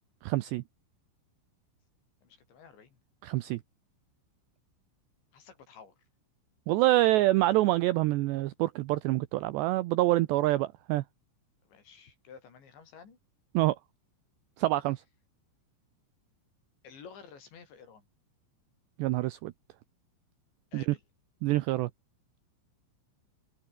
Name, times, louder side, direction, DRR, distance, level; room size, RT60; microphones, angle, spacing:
voice 1, 0.2-0.6 3.2-3.6 6.7-11.0 13.5-13.8 14.6-15.0 19.0-19.5 20.7-20.8 21.4-21.9, right 17 dB, 85° right, 2.5 m, -26 dB
voice 2, 2.2-3.0 5.3-6.0 11.6-13.2 16.8-18.1 20.7-21.0, left 6 dB, 60° left, 7.1 m, -52 dB
omnidirectional pair, 5.9 m